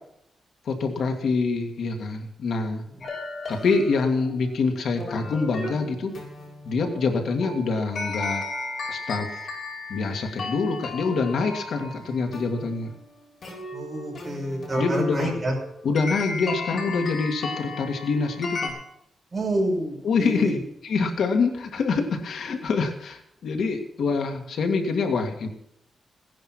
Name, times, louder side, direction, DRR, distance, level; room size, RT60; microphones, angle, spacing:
voice 1, 0.7-2.8 3.5-6.1 6.6-8.4 8.9-9.3 9.9-12.9 14.8-15.4 15.8-18.8 20.0-25.5, left 4 dB, 65° left, 4 dB, 1.9 m, -25 dB
sound 1, 3.0-18.7, left 3 dB, 45° left, 7.0 m, -35 dB
voice 2, 13.7-15.5 19.3-20.5, right 1 dB, 20° right, -2 dB, 6.1 m, -28 dB
17.0 x 10.5 x 6.2 m, 0.76 s
wide cardioid pair, 180°, 0 cm